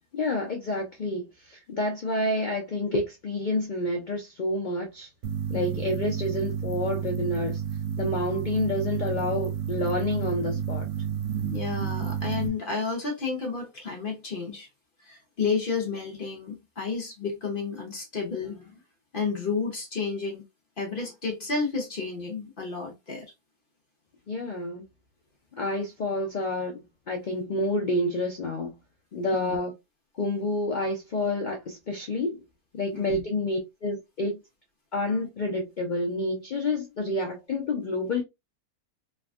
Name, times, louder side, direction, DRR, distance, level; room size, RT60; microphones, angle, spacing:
voice 1, 0.1-5.1 5.5-7.6 8.0-10.9 24.3-24.8 25.5-28.7 29.1-29.7 30.2-32.4 32.7-34.4 34.9-38.2, left 1 dB, 80° left, 0.4 m, -29 dB
sound 1, 5.2-12.5, right 8 dB, 65° right, 0.8 m, -31 dB
voice 2, 5.5-5.9 11.5-14.7 15.0-18.7 19.1-20.4 20.8-23.3 29.3-29.6 32.9-33.2, left 5 dB, 50° left, 0.7 m, -31 dB
3.3 x 2.2 x 2.3 m
omnidirectional pair, 1.6 m